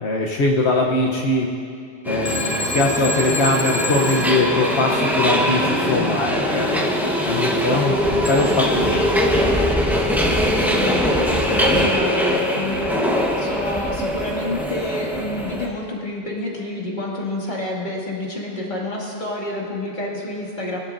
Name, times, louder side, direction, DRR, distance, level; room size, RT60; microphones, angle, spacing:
voice 1, 0.0-1.5 2.1-9.4, left 2 dB, 85° left, -1 dB, 1.2 m, -22 dB
Subway metro underground, 2.0-15.7, equal, ahead, 1.1 m, -21 dB
Telephone, 2.3-5.3 8.3-8.7, left 1 dB, 15° left, 0.4 m, -29 dB
voice 2, 10.3-20.8, left 1 dB, 45° left, -4 dB, 2.4 m, -29 dB
22.0 x 12.0 x 2.6 m, 2.4 s
omnidirectional pair, 1.1 m